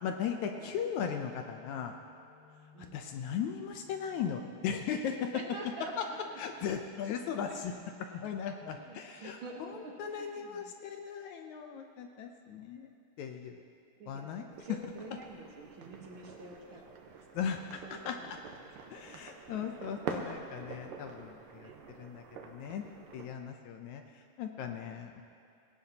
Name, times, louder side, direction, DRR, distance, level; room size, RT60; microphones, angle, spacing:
voice 1, 0.0-2.0 2.9-5.4 6.0-6.1 6.4-7.7 8.1-12.9 13.2-13.6 14.1-14.8 17.3-18.4 18.9-22.8 23.1-25.2, left 7 dB, 75° left, 4 dB, 1.9 m, -38 dB
sound 1, 1.0-8.3, left 5 dB, 50° left, 1.8 m, -62 dB
voice 2, 5.3-6.2 7.0-7.1 7.5-7.8 8.1-8.3 8.6-10.7 14.0-17.1 17.8-19.0 21.5-21.8, right 2 dB, 55° right, 0 dB, 1.6 m, -48 dB
sound 2, 14.5-23.3, right 6 dB, 90° right, 2.7 m, -46 dB
17.5 x 17.5 x 2.9 m, 2.7 s
omnidirectional pair, 3.8 m